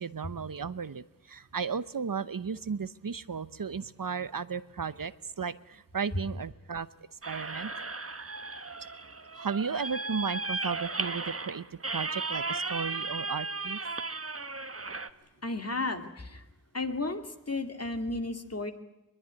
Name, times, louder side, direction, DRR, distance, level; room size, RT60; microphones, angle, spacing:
voice 1, 0.0-6.9 7.3-7.7 9.3-13.8, right 6 dB, 70° right, 15 dB, 0.9 m, -35 dB
sound 1, 7.2-15.1, right 3 dB, 40° right, 1.2 m, -35 dB
voice 2, 15.4-16.5 16.7-18.7, left 2 dB, 45° left, 6 dB, 2.4 m, -33 dB
23.0 x 21.5 x 9.7 m, 0.90 s
wide cardioid pair, 65°, 34 cm